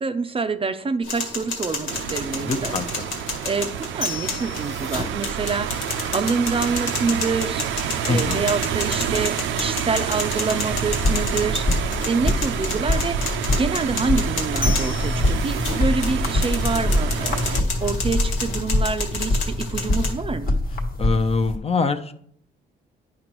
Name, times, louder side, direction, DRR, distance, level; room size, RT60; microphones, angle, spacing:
voice 1, 0.0-2.7 3.4-5.9 6.1-7.6 8.1-20.6, right 4 dB, 30° right, 10 dB, 0.5 m, -27 dB
sound 1, 1.0-20.1, left 3 dB, 85° left, 1.7 m, -31 dB
sound 2, 1.9-17.6, right 9 dB, 75° right, 0.5 m, -29 dB
voice 2, 2.4-2.9 8.1-8.5 21.0-22.1, left 4 dB, 30° left, 10 dB, 0.6 m, -23 dB
sound 3, 10.7-21.6, left 1 dB, 50° left, 1.3 m, -24 dB
9.5 x 5.1 x 3.0 m, 0.64 s
cardioid pair, 90°, 20 cm